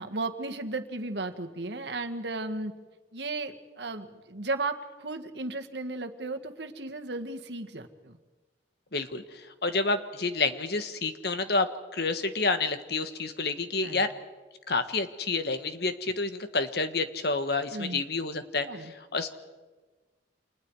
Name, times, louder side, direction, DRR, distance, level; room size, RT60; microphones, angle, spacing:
voice 1, 0.0-2.7 3.1-8.2 13.8-14.1 17.7-18.0 18.6-18.9, right 2 dB, 70° right, 6 dB, 1.8 m, -35 dB
voice 2, 8.9-14.1 14.7-19.3, left 3 dB, 60° left, 9 dB, 1.6 m, -29 dB
29.5 x 27.0 x 4.9 m, 1.3 s
head